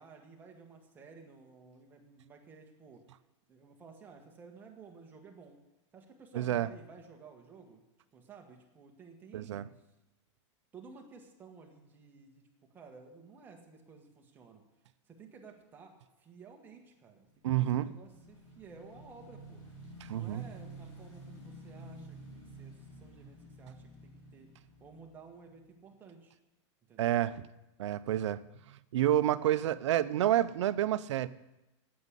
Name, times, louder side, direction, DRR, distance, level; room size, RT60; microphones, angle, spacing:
voice 1, 0.0-3.1 3.5-5.6 5.9-7.8 8.1-9.7 10.7-12.4 12.7-14.7 15.1-17.3 17.6-19.6 20.1-24.5 24.8-26.3 26.9-27.2, right 5 dB, 10° right, 1 dB, 1.4 m, -54 dB
voice 2, 6.3-6.7 9.3-9.6 17.4-17.9 20.0-20.4 27.0-27.3 27.8-31.3, right 12 dB, 75° right, 14 dB, 0.7 m, -29 dB
Motorcycle / Engine, 17.2-25.8, right 1 dB, 25° left, 4.3 m, -51 dB
9.4 x 8.7 x 9.8 m, 0.96 s
supercardioid pair, 170°, 15 cm